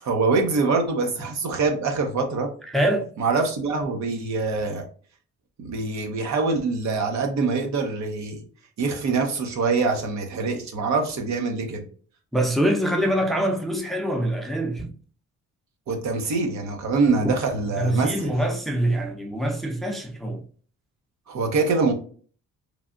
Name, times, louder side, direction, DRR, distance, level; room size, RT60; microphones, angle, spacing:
voice 1, 0.0-2.5 3.2-4.8 5.6-8.4 8.8-11.8 15.9-18.3 21.3-21.9, right 4 dB, 65° right, 0.9 m, -24 dB
voice 2, 2.7-3.1 12.3-14.9 17.8-20.4, right 1 dB, ahead, 0.6 m, -24 dB
3.2 x 2.3 x 2.4 m
cardioid pair, 90°, 30 cm